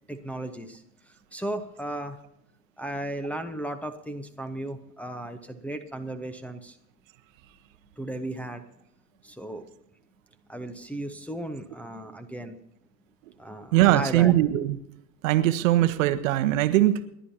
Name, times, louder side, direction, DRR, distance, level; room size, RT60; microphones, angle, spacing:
voice 1, 0.1-0.8 1.3-2.2 2.8-6.8 8.0-8.6 9.2-9.6 10.5-12.6 13.4-14.4, right 1 dB, 5° left, 3 dB, 1.0 m, -35 dB
voice 2, 13.7-14.8 15.2-17.1, right 14 dB, 50° right, 11 dB, 1.1 m, -21 dB
29.5 x 11.5 x 2.8 m, 0.82 s
figure-of-eight pair, 90°, 50 cm